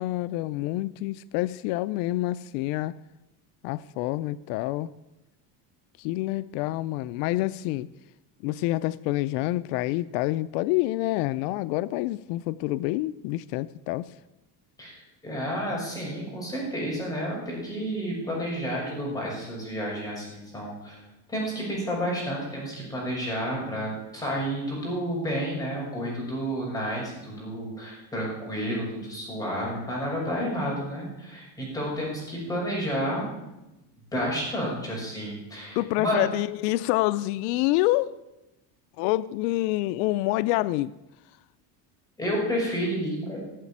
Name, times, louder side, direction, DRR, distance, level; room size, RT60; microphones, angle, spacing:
voice 1, 0.0-2.9 3.6-4.9 6.0-7.9 8.4-14.1 35.7-38.1 39.0-40.9, left 17 dB, 85° left, 16 dB, 0.6 m, -27 dB
voice 2, 14.8-21.0 21.3-33.2 34.1-36.3 42.2-43.4, equal, 10° left, -4 dB, 6.3 m, -30 dB
16.0 x 8.1 x 8.6 m, 0.97 s
cardioid pair, 155°, 47 cm